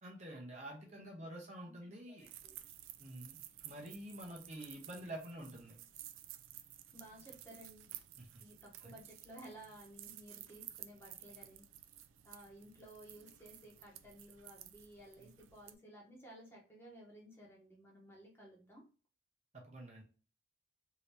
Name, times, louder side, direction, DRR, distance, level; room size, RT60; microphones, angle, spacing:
voice 1, 0.0-2.3 3.0-5.7 8.2-8.3 8.8-9.0 19.5-20.0, right 1 dB, 35° right, -1 dB, 0.7 m, -48 dB
voice 2, 2.2-2.6 6.9-7.9 8.4-11.6 12.2-18.8, right 1 dB, 10° left, -2 dB, 0.9 m, -56 dB
sound 1, 2.2-15.7, right 12 dB, 80° right, 0.3 m, -54 dB
2.8 x 2.7 x 3.3 m, 0.36 s
head